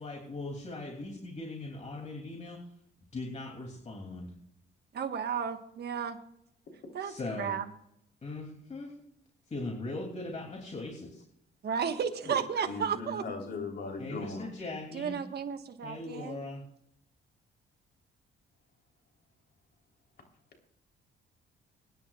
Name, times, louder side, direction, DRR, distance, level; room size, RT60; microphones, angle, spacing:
voice 1, 0.0-2.6 3.1-4.3 7.0-7.6 8.2-8.9 9.5-11.2 14.0-15.2 15.8-16.6, left 2 dB, 35° left, -1 dB, 2.9 m, -39 dB
voice 2, 4.9-6.2 6.9-7.6 11.6-13.2 14.9-16.4, right 7 dB, 55° right, 6 dB, 1.5 m, -33 dB
voice 3, 12.6-14.5, left 3 dB, 55° left, 2 dB, 3.7 m, -38 dB
23.5 x 10.5 x 2.4 m, 0.75 s
cardioid pair, 90°, 20 cm